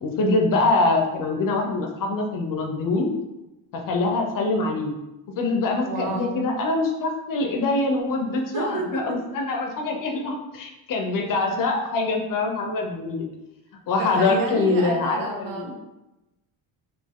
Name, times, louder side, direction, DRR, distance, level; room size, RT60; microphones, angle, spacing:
voice 1, 0.0-3.1 3.9-4.9 5.4-13.3 13.9-15.7, left 3 dB, 45° left, 2 dB, 0.6 m, -24 dB
voice 2, 5.8-6.4 8.5-9.2 14.0-15.8, right 3 dB, 45° right, 2 dB, 0.7 m, -30 dB
4.4 x 2.7 x 3.5 m, 0.99 s
cardioid pair, 170°, 45 cm